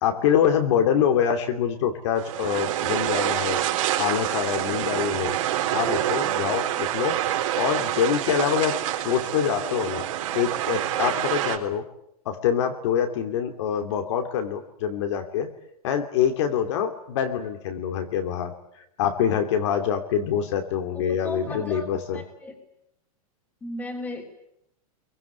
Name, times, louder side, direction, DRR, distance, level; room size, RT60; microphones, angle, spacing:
voice 1, 0.0-3.6 4.0-5.4 5.7-7.2 7.6-8.8 9.0-10.1 10.3-11.8 12.3-15.5 15.8-18.5 19.0-22.2, left 8 dB, 50° left, 6 dB, 2.6 m, -25 dB
sound 1, 2.2-11.6, right 12 dB, 55° right, 4.2 m, -27 dB
voice 2, 20.9-21.9 22.1-22.5 23.6-24.3, left 1 dB, 10° left, 3 dB, 3.5 m, -35 dB
29.0 x 23.0 x 8.3 m, 0.79 s
supercardioid pair, 175°, 19 cm